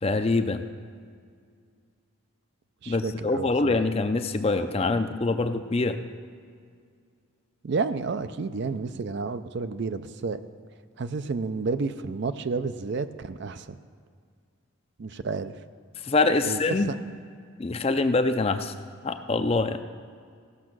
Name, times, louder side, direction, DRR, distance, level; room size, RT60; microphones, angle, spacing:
voice 1, 0.0-0.6 2.9-6.0 16.0-16.9 17.6-18.7 19.0-19.8, left 3 dB, 30° left, 9 dB, 0.4 m, -24 dB
voice 2, 2.8-3.8 7.6-10.4 11.0-13.8 15.0-15.5 16.4-16.9, right 4 dB, 55° right, 11 dB, 0.4 m, -31 dB
16.0 x 6.2 x 6.1 m, 2.1 s
head